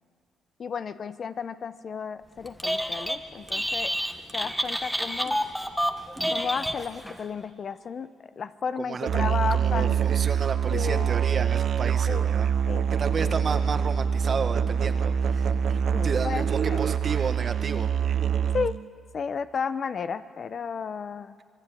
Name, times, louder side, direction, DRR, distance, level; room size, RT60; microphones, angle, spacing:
voice 1, 0.6-3.9 4.3-5.4 6.3-10.0 10.7-11.1 12.1-12.3 12.7-12.9 13.2-13.3 15.9-16.8 18.5-18.8 19.1-21.4, left 6 dB, 50° left, 12 dB, 0.9 m, -33 dB
Telephone, 2.5-3.2 3.5-7.2, equal, ahead, 1.4 m, -29 dB
voice 2, 8.8-12.5 12.9-17.9, right 5 dB, 45° right, 8 dB, 1.7 m, -32 dB
Musical instrument, 9.1-18.9, right 8 dB, 60° right, 0.6 m, -25 dB
25.5 x 21.5 x 9.3 m, 2.1 s
cardioid pair, 90°, 0 cm